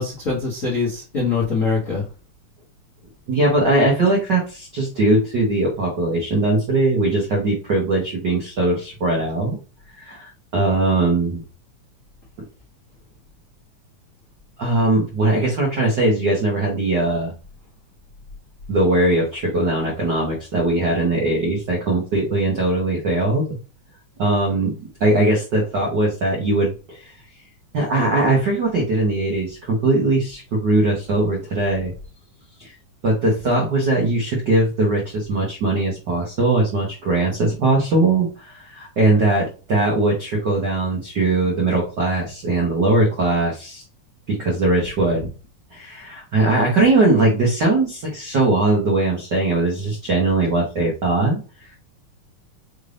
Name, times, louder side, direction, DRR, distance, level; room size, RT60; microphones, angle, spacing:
voice 1, 0.0-2.0, left 4 dB, 75° left, -4 dB, 0.7 m, -23 dB
voice 2, 3.3-9.6 10.0-11.4 14.6-17.3 18.7-23.5 24.2-27.1 27.7-31.9 32.6-32.7 33.0-43.8 44.3-45.3 45.7-51.4, right 2 dB, 85° right, -2 dB, 0.9 m, -20 dB
5.4 x 3.4 x 2.5 m, 0.34 s
omnidirectional pair, 3.9 m